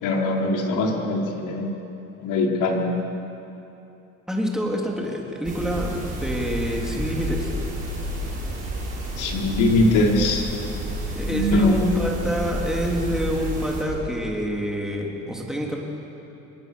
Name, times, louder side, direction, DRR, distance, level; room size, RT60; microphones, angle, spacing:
voice 1, 0.0-1.7 2.2-2.9 9.2-10.5 11.3-11.8, left 2 dB, 70° left, 0 dB, 4.2 m, -21 dB
voice 2, 4.3-7.5 11.1-15.8, equal, ahead, -1 dB, 3.2 m, -27 dB
sound 1, 5.4-13.8, right 1 dB, 25° right, 6.0 m, -30 dB
27.0 x 23.5 x 7.0 m, 2.9 s
cardioid pair, 170°, 31 cm